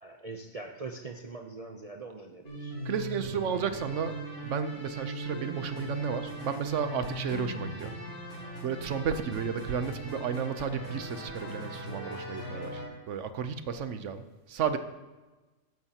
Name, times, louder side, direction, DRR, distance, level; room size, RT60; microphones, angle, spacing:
voice 1, 0.0-2.7, right 3 dB, 40° right, 3 dB, 0.5 m, -42 dB
sound 1, 2.4-12.9, right 1 dB, 70° left, 4.1 m, -39 dB
voice 2, 2.8-4.1 4.4-7.9 8.6-12.8 13.1-14.8, right 7 dB, 65° right, 10 dB, 1.0 m, -33 dB
14.0 x 10.5 x 2.8 m, 1.2 s
omnidirectional pair, 1.4 m